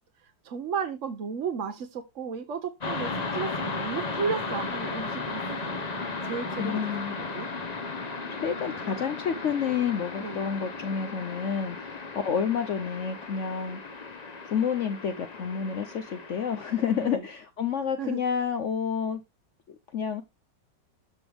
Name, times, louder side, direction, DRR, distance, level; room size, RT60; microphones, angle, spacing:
voice 1, 0.2-5.8 6.2-6.8 7.1-7.5 10.2-10.4 17.0-17.2 18.0-18.2, right 6 dB, 50° right, 1.1 m, -34 dB
sound 1, 2.8-17.1, left 3 dB, 30° left, 0.8 m, -35 dB
voice 2, 6.6-7.2 8.3-13.8 14.5-19.2 19.7-20.2, left 7 dB, 60° left, 0.8 m, -29 dB
13.0 x 5.1 x 3.4 m
omnidirectional pair, 2.0 m